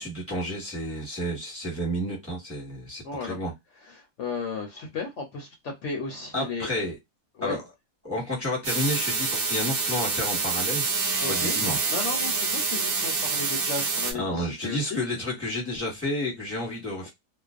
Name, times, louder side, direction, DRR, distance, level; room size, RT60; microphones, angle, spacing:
voice 1, 0.0-3.5 6.3-6.9 7.4-7.6 8.0-10.9 11.3-11.8 14.2-17.1, left 1 dB, 10° right, 1.0 m, -31 dB
voice 2, 3.0-3.4 3.9-6.7 7.4-7.6 11.2-11.6 11.9-15.0, left 4 dB, 60° left, 0.9 m, -34 dB
sound 1, 8.6-14.1, right 4 dB, 55° right, 0.7 m, -27 dB
2.5 x 2.1 x 2.4 m
omnidirectional pair, 1.5 m